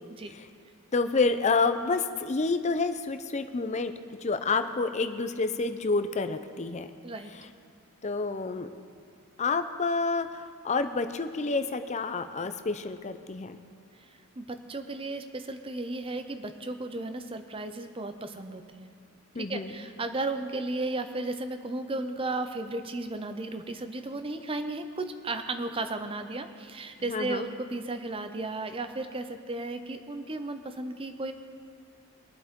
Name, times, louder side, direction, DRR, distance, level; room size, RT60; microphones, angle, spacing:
voice 1, 0.9-3.9 4.2-6.9 7.4-7.5 8.0-8.7 9.4-13.6 19.3-19.7 27.1-27.5, left 4 dB, 30° left, 9 dB, 0.5 m, -29 dB
voice 2, 14.4-18.9 19.4-31.3, right 2 dB, 25° right, 8 dB, 0.6 m, -34 dB
22.0 x 8.2 x 3.7 m, 2.2 s
head